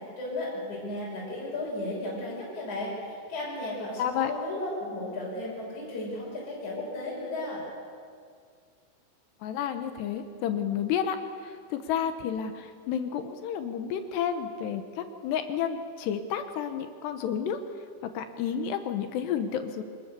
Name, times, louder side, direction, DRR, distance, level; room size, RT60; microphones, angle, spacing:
voice 1, 0.0-7.6, left 1 dB, 40° left, -6 dB, 7.4 m, -34 dB
voice 2, 4.0-4.3 9.4-11.2 11.4-17.6 18.0-19.8, left 8 dB, 75° left, 8 dB, 2.8 m, -31 dB
25.5 x 20.5 x 6.8 m, 2.1 s
omnidirectional pair, 5.7 m